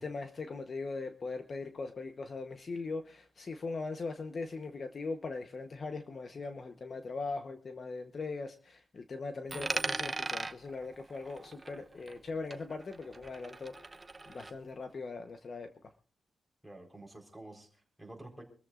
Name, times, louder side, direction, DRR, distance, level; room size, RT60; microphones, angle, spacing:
voice 1, 0.0-14.0 14.3-15.7, left 3 dB, 40° left, 7 dB, 1.0 m, -40 dB
Coin (dropping), 9.5-12.3 12.5-14.5, right 3 dB, 20° right, 0.8 m, -39 dB
voice 2, 16.6-18.4, right 1 dB, ahead, 0 dB, 4.3 m, -50 dB
25.0 x 14.0 x 2.5 m, 0.40 s
wide cardioid pair, 135°, 0 cm